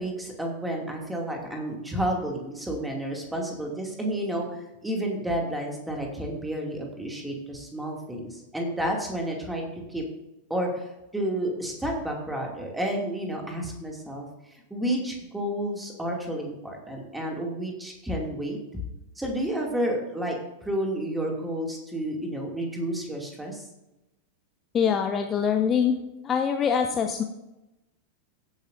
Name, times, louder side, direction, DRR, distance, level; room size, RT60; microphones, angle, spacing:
voice 1, 0.0-10.0 10.5-10.9 11.1-18.6 19.2-20.3 20.6-23.7, right 1 dB, 5° right, 0 dB, 2.5 m, -31 dB
voice 2, 24.7-26.0 26.2-27.2, left 7 dB, 25° left, 5 dB, 0.7 m, -24 dB
16.5 x 9.1 x 2.7 m, 0.95 s
figure-of-eight pair, 90°, 0 cm